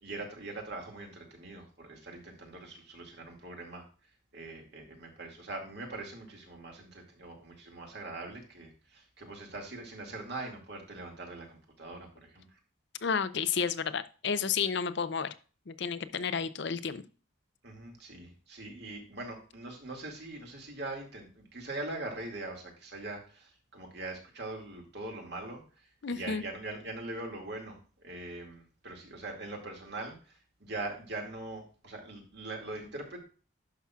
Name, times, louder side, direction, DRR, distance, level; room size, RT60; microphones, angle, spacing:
voice 1, 0.0-3.8 4.3-12.4 17.6-25.6 26.1-33.2, right 2 dB, 55° right, 1 dB, 2.1 m, -42 dB
voice 2, 13.0-15.3 15.7-17.0 26.0-26.4, left 6 dB, 55° left, 13 dB, 0.5 m, -31 dB
11.5 x 5.9 x 2.4 m, 0.36 s
head